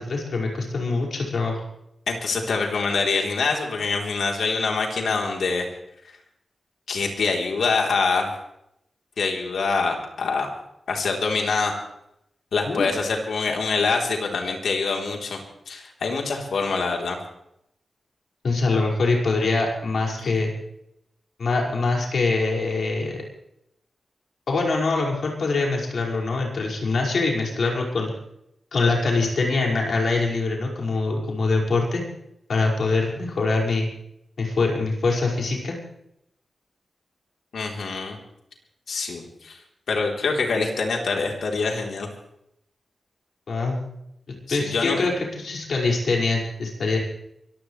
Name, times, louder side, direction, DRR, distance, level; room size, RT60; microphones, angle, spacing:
voice 1, 0.0-1.6 12.7-12.9 18.4-20.5 21.4-23.2 24.5-28.1 28.7-32.0 32.5-33.9 34.4-35.8 43.5-43.9 44.5-47.0, left 3 dB, 70° left, -1 dB, 5.5 m, -24 dB
voice 2, 2.1-5.7 6.9-8.3 9.2-10.5 10.9-11.7 12.5-15.4 15.7-17.2 20.2-20.3 37.5-38.2 38.9-39.6 39.9-42.1 44.5-45.1, left 4 dB, 90° left, 1 dB, 3.6 m, -25 dB
24.0 x 15.5 x 3.3 m, 0.78 s
wide cardioid pair, 120°, 0 cm